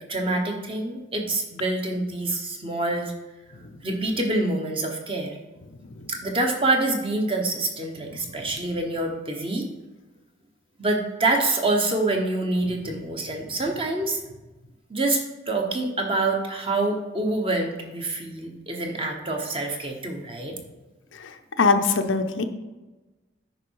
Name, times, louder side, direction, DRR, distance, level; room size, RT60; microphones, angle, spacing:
voice 1, 0.0-3.1 3.8-5.4 6.1-9.7 10.8-14.2 14.9-20.5, right 2 dB, 30° right, 2 dB, 1.1 m, -26 dB
voice 2, 21.1-22.4, left 4 dB, 85° left, 7 dB, 0.7 m, -24 dB
9.7 x 5.5 x 4.7 m, 1.1 s
head